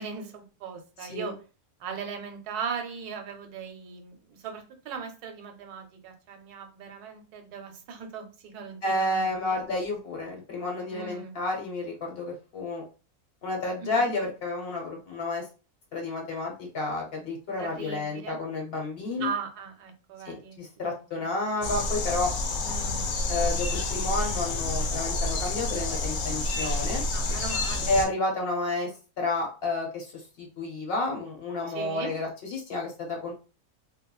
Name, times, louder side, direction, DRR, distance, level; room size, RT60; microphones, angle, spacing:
voice 1, 0.0-1.4 1.8-9.6 10.9-11.4 13.8-14.1 17.6-18.4 19.2-21.3 22.5-23.2 27.1-27.9 31.7-32.1, right 6 dB, 90° right, 5 dB, 1.1 m, -39 dB
voice 2, 8.8-12.8 13.4-15.4 15.9-19.3 20.2-22.3 23.3-27.0 27.9-28.9 29.2-30.1 30.4-33.3, left 2 dB, 50° left, 1 dB, 0.8 m, -30 dB
sound 1, 21.6-28.1, left 2 dB, 75° left, 1.1 m, -29 dB
3.3 x 2.1 x 2.2 m, 0.35 s
omnidirectional pair, 1.6 m